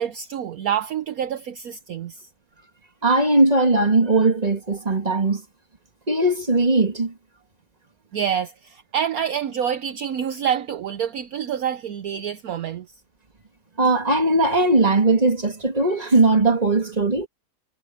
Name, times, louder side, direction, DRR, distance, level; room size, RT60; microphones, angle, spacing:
voice 1, 0.0-2.3 8.1-12.9, right 9 dB, 65° right, 1.2 m, -27 dB
voice 2, 3.0-5.4 6.1-7.1 13.8-17.3, right 2 dB, 25° right, 2.7 m, -19 dB
omnidirectional pair, 1.8 m